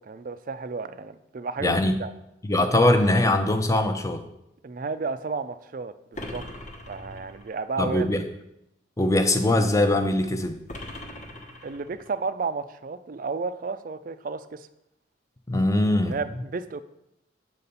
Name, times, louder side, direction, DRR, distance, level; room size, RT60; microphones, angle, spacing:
voice 1, 0.0-2.1 4.6-6.5 6.9-8.1 11.6-14.7 16.1-16.8, right 4 dB, 45° right, 13 dB, 0.4 m, -32 dB
voice 2, 1.6-1.9 2.4-4.2 7.8-8.2 9.0-10.6 15.5-16.1, left 1 dB, 15° left, 7 dB, 0.6 m, -21 dB
sound 1, 6.1-7.6 10.7-12.2, left 1 dB, 40° left, 1.0 m, -40 dB
7.5 x 4.1 x 6.9 m, 0.84 s
head